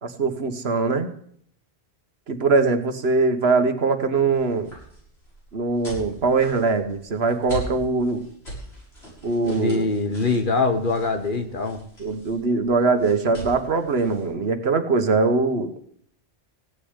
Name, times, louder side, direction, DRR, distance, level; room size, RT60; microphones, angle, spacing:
voice 1, 0.0-1.1 2.3-4.7 5.5-8.3 9.2-9.9 12.0-15.7, right 3 dB, 70° right, 9 dB, 1.5 m, -22 dB
sound 1, 4.3-14.3, right 1 dB, 70° left, 7.8 m, -41 dB
voice 2, 9.4-11.8, left 3 dB, 50° left, 8 dB, 1.3 m, -23 dB
16.5 x 6.9 x 9.7 m, 0.65 s
omnidirectional pair, 1.1 m